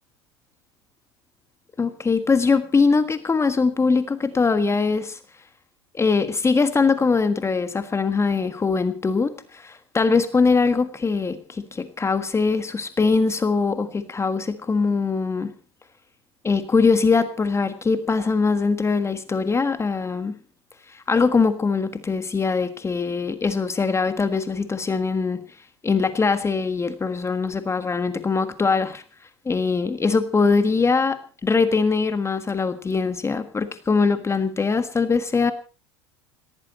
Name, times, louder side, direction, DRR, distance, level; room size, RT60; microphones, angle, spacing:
voice 1, 1.8-5.2 5.9-15.5 16.4-20.4 20.9-25.4 25.8-29.0 29.4-35.5, left 4 dB, 20° left, 11 dB, 1.5 m, -22 dB
18.5 x 16.5 x 4.3 m, 0.37 s
hypercardioid pair, 75°, 14 cm